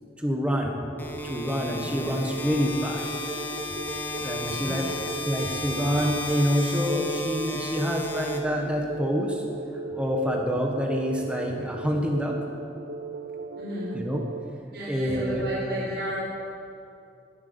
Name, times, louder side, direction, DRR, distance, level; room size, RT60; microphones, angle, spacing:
voice 1, 0.2-0.8 1.2-3.2 4.2-4.9 5.2-9.4 9.9-12.3 13.9-14.2 14.9-15.4, equal, 5° right, 0 dB, 1.4 m, -27 dB
sound 1, 0.9-14.5, right 4 dB, 60° right, 0.6 m, -37 dB
sound 2, 1.0-9.0, left 3 dB, 10° left, 1.3 m, -35 dB
voice 2, 1.6-1.9 4.4-4.8 13.5-13.9 14.7-16.2, equal, 75° right, -9 dB, 4.5 m, -33 dB
21.5 x 8.2 x 6.9 m, 2.6 s
head